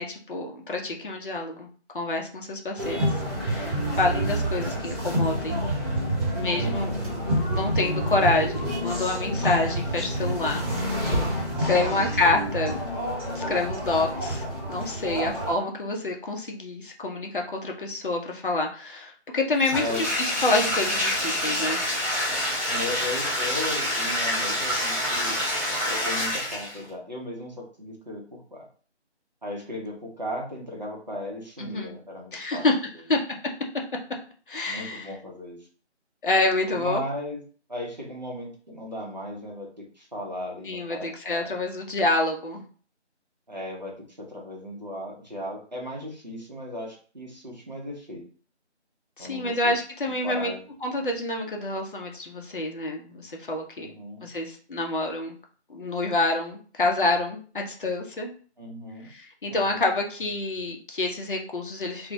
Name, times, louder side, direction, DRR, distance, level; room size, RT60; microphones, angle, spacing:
voice 1, 0.0-1.7 1.9-3.1 3.4-5.6 6.3-6.9 7.3-10.6 11.3-12.8 13.3-21.8 31.6-31.9 32.3-32.8 33.1-33.2 34.5-35.1 36.2-37.0 40.7-42.6 49.2-50.5 50.8-53.9 54.2-55.3 55.7-58.3 59.0-62.1, left 2 dB, 50° left, 1 dB, 0.5 m, -27 dB
sound 1, 2.8-15.5, equal, 20° right, 1.0 m, -28 dB
voice 2, 6.5-7.4 11.7-12.0 15.1-15.4 19.8-20.1 22.7-25.4 25.9-28.6 29.4-32.6 34.7-35.6 36.7-37.4 37.7-41.5 43.5-48.2 49.2-49.7 50.2-50.6 51.0-51.1 53.8-54.3 58.6-59.1 59.5-59.9, left 1 dB, 40° right, -2 dB, 0.6 m, -36 dB
Bathtub (filling or washing), 19.6-26.9, left 1 dB, 30° left, 1.0 m, -27 dB
2.2 x 2.1 x 2.6 m, 0.41 s
figure-of-eight pair, 170°, 34 cm